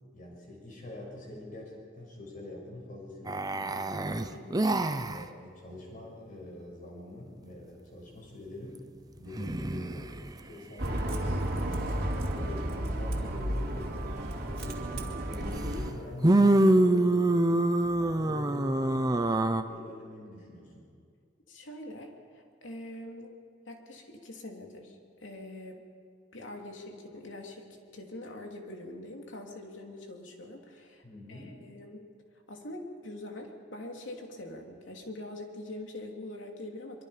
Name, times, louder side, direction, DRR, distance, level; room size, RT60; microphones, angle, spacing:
voice 1, 0.1-3.8 4.1-4.7 5.0-8.8 9.2-12.0 12.3-14.9 15.2-17.6 18.0-20.9 31.0-31.6, left 1 dB, 45° left, -2 dB, 6.8 m, -44 dB
sound 1, 3.3-5.2 9.3-10.3 15.3-15.4 16.2-19.6, right 1 dB, 20° right, 0.7 m, -25 dB
Bus, 10.8-15.9, right 1 dB, 55° right, 2.6 m, -32 dB
voice 2, 21.5-23.3 23.7-25.8 26.3-31.0 31.3-32.0 32.5-37.0, left 1 dB, 80° left, 2 dB, 3.0 m, -44 dB
24.0 x 24.0 x 5.1 m, 2.2 s
head